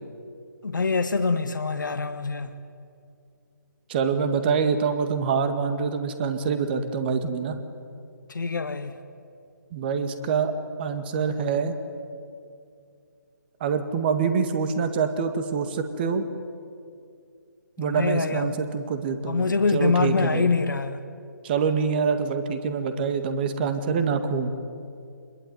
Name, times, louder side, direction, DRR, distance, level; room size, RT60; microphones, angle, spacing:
voice 1, 0.6-2.5 8.3-9.0 17.8-18.6 19.3-21.1, left 4 dB, 70° left, 8 dB, 1.7 m, -25 dB
voice 2, 3.9-7.6 9.7-10.5 10.8-11.8 13.6-16.2 17.8-20.6 21.4-24.5, right 6 dB, 30° right, 9 dB, 2.0 m, -25 dB
26.0 x 21.0 x 9.7 m, 2.4 s
figure-of-eight pair, 150°, 11 cm